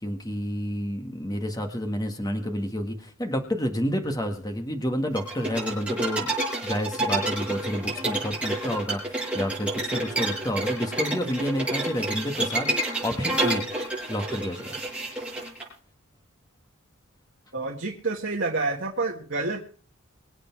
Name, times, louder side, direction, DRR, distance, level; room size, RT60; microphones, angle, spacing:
voice 1, 0.0-6.3 6.6-13.6 14.1-14.8, equal, 15° left, 4 dB, 1.8 m, -29 dB
sound 1, 5.2-15.6, right 2 dB, 5° right, 6.6 m, -29 dB
voice 2, 17.5-19.6, right 3 dB, 55° right, 0 dB, 1.9 m, -28 dB
25.0 x 8.4 x 4.7 m, 0.42 s
head